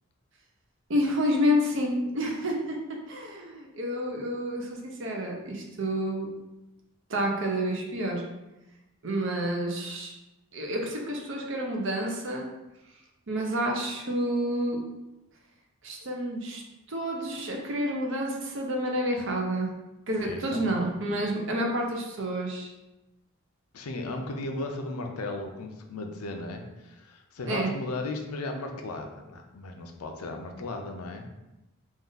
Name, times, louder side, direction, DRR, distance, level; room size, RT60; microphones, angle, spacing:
voice 1, 0.9-2.8 3.1-6.3 7.1-8.2 9.0-10.1 10.5-12.5 13.3-14.8 15.8-16.6 16.9-19.7 20.1-22.7 27.5-27.7, equal, 55° right, 1 dB, 0.7 m, -29 dB
voice 2, 20.2-20.6 23.7-31.3, left 2 dB, 90° left, 4 dB, 0.5 m, -36 dB
3.5 x 2.5 x 3.9 m, 0.99 s
head